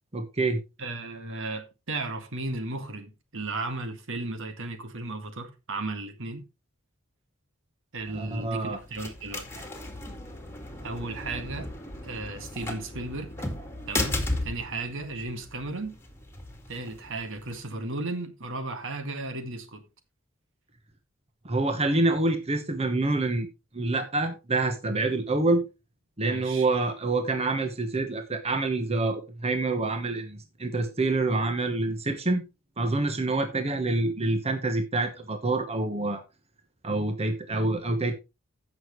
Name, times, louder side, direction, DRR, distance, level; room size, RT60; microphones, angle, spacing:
voice 1, 0.1-0.6 8.1-8.8 21.4-23.5 23.7-25.7 26.2-32.4 32.8-36.2 36.8-38.1, right 2 dB, 30° right, 1.2 m, -27 dB
voice 2, 0.8-6.4 7.9-9.7 10.8-11.7 12.0-13.3 13.9-16.0 16.7-19.8 26.2-26.7, right 2 dB, 65° right, 1.9 m, -35 dB
sound 1, 8.0-17.6, left 2 dB, 10° left, 2.2 m, -36 dB
15.5 x 6.3 x 3.2 m
head